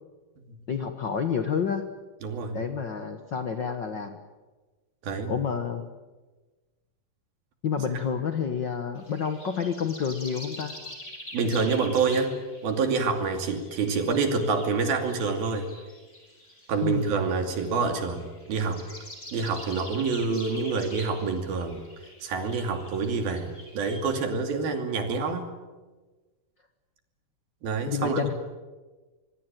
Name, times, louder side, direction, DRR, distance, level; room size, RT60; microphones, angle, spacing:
voice 1, 0.7-1.8 2.5-4.2 5.3-5.9 7.6-10.8 16.8-17.1 27.9-28.3, left 6 dB, 75° left, 8 dB, 1.0 m, -29 dB
voice 2, 2.2-2.6 5.0-5.3 11.3-15.7 16.7-18.8 19.3-21.8 22.2-25.5 27.6-28.3, right 4 dB, 80° right, 6 dB, 4.5 m, -27 dB
sound 1, 9.0-24.1, left 1 dB, 20° left, 6.5 m, -45 dB
25.0 x 23.0 x 9.1 m, 1.3 s
omnidirectional pair, 4.2 m